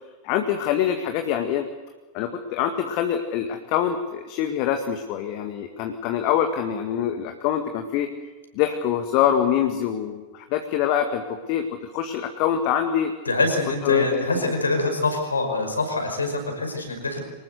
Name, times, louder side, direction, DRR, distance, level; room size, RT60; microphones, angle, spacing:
voice 1, 0.2-1.7 2.1-8.1 8.6-11.2 11.5-11.7 11.9-13.1 13.8-14.5, left 9 dB, 45° left, 6 dB, 1.9 m, -24 dB
voice 2, 13.2-17.2, left 2 dB, 75° left, 4 dB, 5.6 m, -25 dB
25.0 x 20.0 x 8.0 m, 1.2 s
figure-of-eight pair, 90°, 0 cm